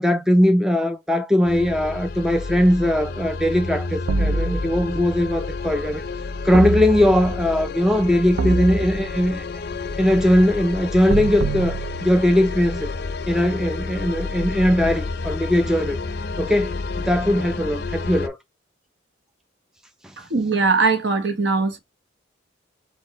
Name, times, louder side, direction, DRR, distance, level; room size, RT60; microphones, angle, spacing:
voice 1, 0.0-6.0 6.4-9.5 10.0-12.9 13.3-16.0 16.4-18.4, left 1 dB, 5° right, 0.4 m, -20 dB
sound 1, 1.4-18.3, left 3 dB, 50° left, 0.5 m, -30 dB
sound 2, 4.1-5.1 6.5-7.5 8.4-9.4 11.1-12.5, right 3 dB, 80° right, 0.5 m, -26 dB
voice 2, 20.3-21.8, right 4 dB, 60° right, 1.0 m, -20 dB
4.5 x 2.5 x 3.9 m
head